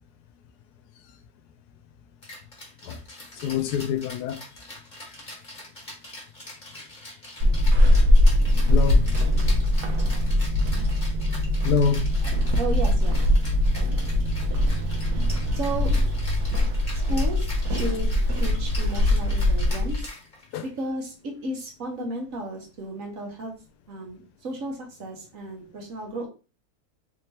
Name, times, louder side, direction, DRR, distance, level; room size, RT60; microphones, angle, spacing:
Rattle (instrument), 2.2-20.7, left 1 dB, 30° left, 1.4 m, -42 dB
voice 1, 3.4-4.4 8.7-9.1 11.6-12.1 20.5-20.6, left 7 dB, 85° left, 1.1 m, -25 dB
Walk footsteps / Squeak, 7.4-20.1, left 1 dB, 85° right, 1.3 m, -21 dB
voice 2, 12.6-13.2 15.5-15.9 17.1-20.0 20.6-23.5 23.9-26.3, right 2 dB, 60° right, 1.4 m, -33 dB
3.5 x 2.8 x 3.2 m
omnidirectional pair, 1.7 m